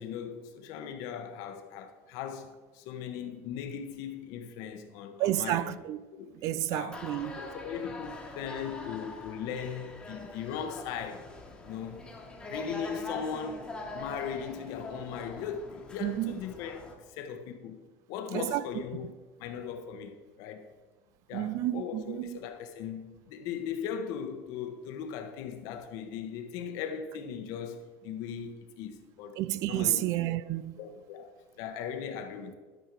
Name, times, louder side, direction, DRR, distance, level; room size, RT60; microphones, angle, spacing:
voice 1, 0.0-5.8 6.1-6.3 6.7-7.0 7.4-11.3 11.6-12.1 12.5-17.8 18.1-19.1 19.4-20.6 21.3-29.4 29.7-30.1 30.8-32.5, left 8 dB, 60° left, 1.1 m, -38 dB
voice 2, 5.2-6.0 6.4-7.4 16.0-16.4 18.3-18.6 21.3-22.4 29.4-30.8, right 15 dB, 50° right, 0.4 m, -30 dB
sound 1, 6.9-16.9, left 2 dB, 10° left, 1.4 m, -43 dB
12.0 x 5.6 x 4.7 m
cardioid pair, 155°, 7 cm